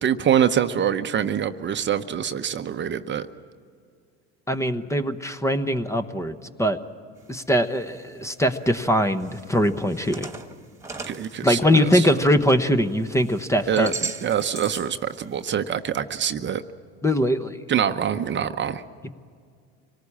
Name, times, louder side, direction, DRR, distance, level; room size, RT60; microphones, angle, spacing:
voice 1, 0.0-3.3 11.1-12.1 13.7-16.6 17.7-18.8, right 9 dB, 35° right, 9 dB, 0.8 m, -25 dB
voice 2, 4.5-6.8 7.3-10.3 11.4-13.9 17.0-17.6 19.0-19.1, equal, 10° left, 10 dB, 0.9 m, -22 dB
sound 1, 7.2-7.8 8.3-8.4 9.1-12.6 12.9-15.0 15.3-15.5, right 4 dB, 10° right, 1.8 m, -37 dB
25.5 x 18.5 x 8.6 m, 2.2 s
supercardioid pair, 100°, 33 cm